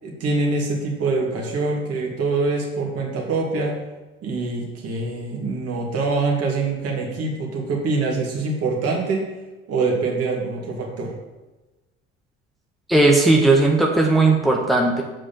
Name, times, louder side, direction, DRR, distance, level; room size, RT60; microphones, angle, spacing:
voice 1, 0.0-3.7 4.2-9.3 9.7-11.1, right 3 dB, 50° right, -1 dB, 2.5 m, -24 dB
voice 2, 12.9-15.0, right 2 dB, ahead, -1 dB, 1.4 m, -16 dB
7.7 x 5.0 x 7.1 m, 1.1 s
figure-of-eight pair, 55°, 32 cm